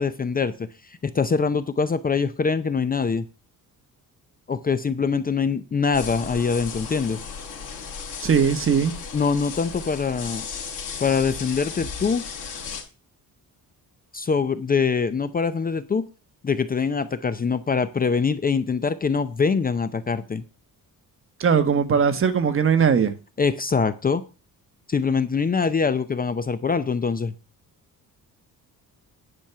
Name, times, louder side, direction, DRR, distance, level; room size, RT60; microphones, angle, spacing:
voice 1, 0.0-3.3 4.5-7.2 9.1-10.4 11.0-12.2 14.1-16.1 16.4-20.4 23.4-24.2 24.9-27.3, left 5 dB, 25° left, 0.6 m, -24 dB
sound 1, 5.9-12.8, left 6 dB, 60° left, 4.1 m, -35 dB
voice 2, 8.2-8.9 21.4-23.1, right 7 dB, 35° right, 1.2 m, -19 dB
10.5 x 6.1 x 6.7 m
cardioid pair, 160°, 35 cm